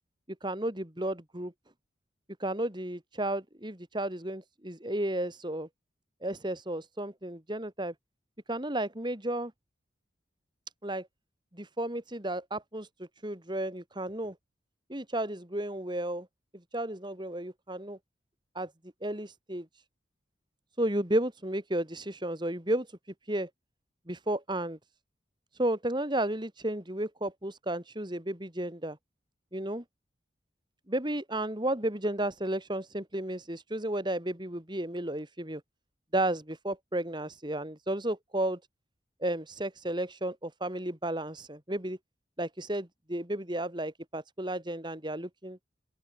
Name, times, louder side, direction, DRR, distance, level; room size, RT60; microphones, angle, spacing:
voice 1, 0.4-1.5 2.4-5.7 6.2-7.9 8.5-9.5 10.8-11.1 11.5-12.9 13.2-14.3 14.9-16.3 16.7-18.0 18.5-18.7 19.0-19.7 20.8-22.9 23.3-23.5 24.1-24.8 25.6-29.0 29.5-29.8 30.9-35.6 36.1-38.6 39.2-42.0 42.4-45.6, right 1 dB, 25° right, 2.7 m, -33 dB
open air
head